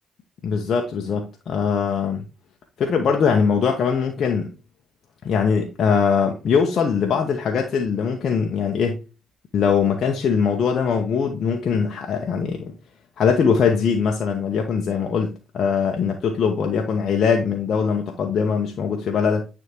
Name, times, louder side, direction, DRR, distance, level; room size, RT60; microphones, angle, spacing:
voice 1, 0.4-2.2 2.8-4.5 5.2-9.0 9.5-12.7 13.2-19.4, left 6 dB, 60° left, 0.8 m, -21 dB
9.1 x 3.6 x 3.0 m
hypercardioid pair, 45°, 0 cm